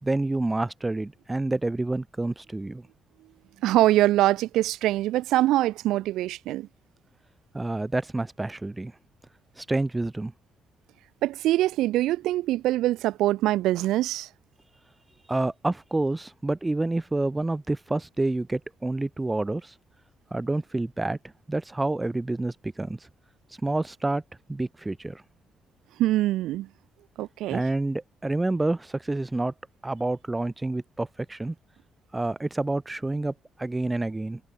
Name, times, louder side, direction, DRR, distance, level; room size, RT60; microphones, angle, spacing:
voice 1, 0.0-2.9 7.5-8.9 9.6-10.3 15.3-19.7 20.3-21.2 21.5-23.0 23.6-24.2 24.5-25.2 27.5-29.5 29.8-31.6 32.1-33.3 33.6-34.4, right 2 dB, 15° right, 5.3 m, -28 dB
voice 2, 3.6-6.7 11.2-14.3 26.0-26.7 27.2-27.6, right 15 dB, 90° right, 4.5 m, -23 dB
cardioid pair, 90°, 0 cm